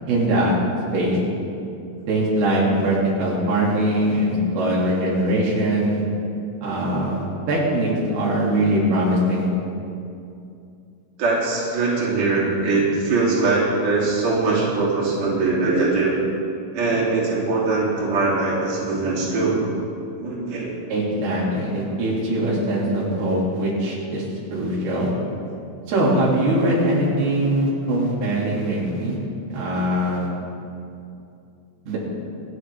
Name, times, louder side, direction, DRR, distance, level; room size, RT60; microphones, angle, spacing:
voice 1, 0.1-0.5 0.9-1.2 2.1-6.0 6.6-9.5 20.9-24.2 24.5-25.1 25.9-29.2 29.5-30.3 31.9-32.0, right 1 dB, 90° right, -5 dB, 4.3 m, -21 dB
voice 2, 11.2-16.1 16.7-19.6 20.2-20.7, right 3 dB, 60° right, -7 dB, 4.3 m, -21 dB
26.0 x 9.4 x 3.4 m, 2.6 s
omnidirectional pair, 4.4 m